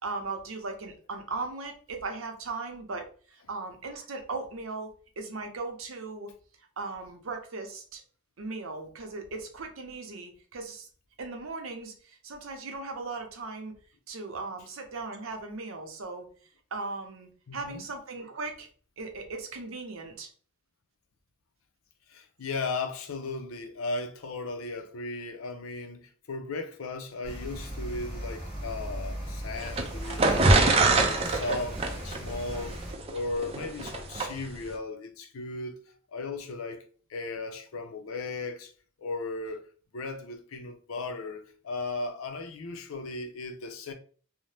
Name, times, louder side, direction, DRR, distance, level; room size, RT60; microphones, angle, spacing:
voice 1, 0.0-6.3 6.8-8.0 8.4-10.9 11.2-13.7 14.1-16.3 16.7-18.7 19.0-20.3, right 3 dB, 75° right, 0.6 m, -38 dB
voice 2, 17.5-17.8 22.1-32.8 33.1-35.8 36.1-36.8 37.1-38.7 39.0-39.7 39.9-43.9, left 3 dB, 90° left, 0.5 m, -36 dB
sound 1, 27.2-32.9, equal, 30° left, 1.0 m, -38 dB
sound 2, 29.6-34.3, right 2 dB, 30° right, 0.4 m, -24 dB
2.7 x 2.0 x 3.2 m
head